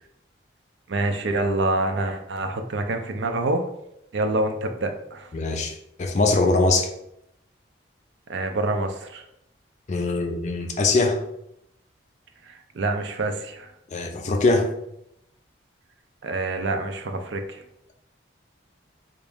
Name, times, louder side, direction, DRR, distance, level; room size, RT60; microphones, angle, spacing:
voice 1, 0.9-3.6 4.1-5.3 8.3-9.2 12.5-13.7 16.2-17.6, right 2 dB, 70° right, 5 dB, 0.4 m, -26 dB
voice 2, 5.3-6.9 9.9-11.2 13.9-14.7, left 3 dB, 40° left, 3 dB, 0.4 m, -22 dB
3.5 x 2.6 x 3.4 m, 0.79 s
head